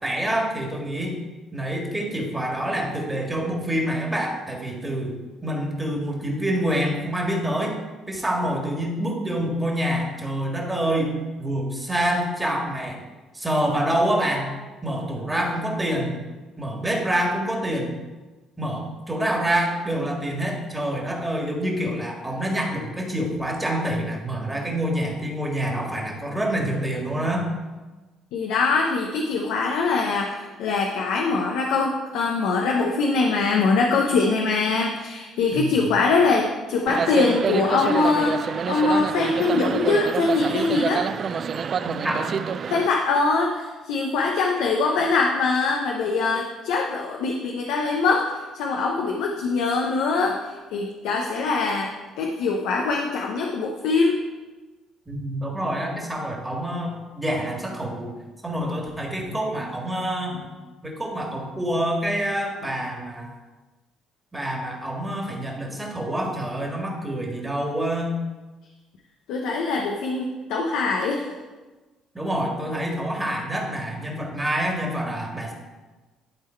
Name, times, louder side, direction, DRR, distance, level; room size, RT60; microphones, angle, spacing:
voice 1, 0.0-1.1 1.5-5.1 5.4-7.7 8.1-13.0 13.3-14.5 14.8-16.2 16.6-17.9 18.6-27.5 35.5-35.9 41.8-42.3 55.1-58.1 58.4-60.5 60.8-63.3 64.3-68.2 72.1-75.5, right 1 dB, 10° right, 0 dB, 1.8 m, -26 dB
voice 2, 28.3-41.0 42.7-48.3 48.5-51.9 52.2-54.2 69.3-71.3, left 4 dB, 85° left, 1 dB, 0.8 m, -23 dB
sound 1, 36.9-42.9, right 6 dB, 45° right, 0.3 m, -27 dB
11.5 x 3.8 x 4.4 m, 1.2 s
cardioid pair, 90°, 0 cm